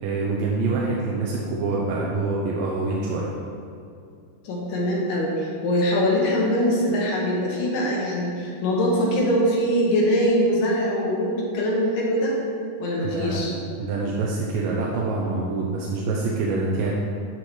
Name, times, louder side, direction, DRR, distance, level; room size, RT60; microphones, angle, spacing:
voice 1, 0.0-3.3 13.0-13.4 13.8-16.9, right 3 dB, 80° right, -4 dB, 2.3 m, -25 dB
voice 2, 4.4-12.3 12.8-13.5, equal, 75° left, -4 dB, 2.6 m, -22 dB
12.0 x 4.4 x 3.2 m, 2.5 s
omnidirectional pair, 4.0 m